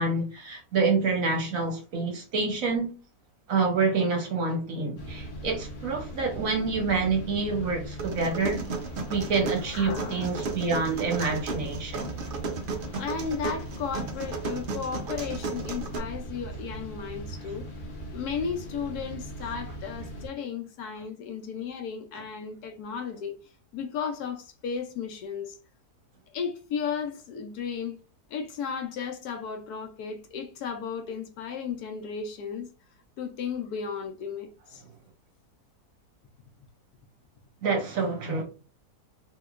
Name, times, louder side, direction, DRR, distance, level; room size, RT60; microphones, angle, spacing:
voice 1, 0.0-2.9 3.5-8.6 9.1-12.0 37.6-38.4, right 4 dB, 60° right, 1.0 m, -27 dB
sound 1, 5.0-20.3, right 1 dB, 50° left, 0.6 m, -39 dB
sound 2, 8.0-16.0, right 4 dB, 90° right, 0.4 m, -34 dB
voice 2, 9.7-10.3 12.9-17.7 18.1-23.3 23.7-25.6 26.3-27.9 28.3-32.7 33.2-34.8, left 6 dB, 70° left, 1.0 m, -34 dB
3.6 x 2.8 x 2.3 m
omnidirectional pair, 1.8 m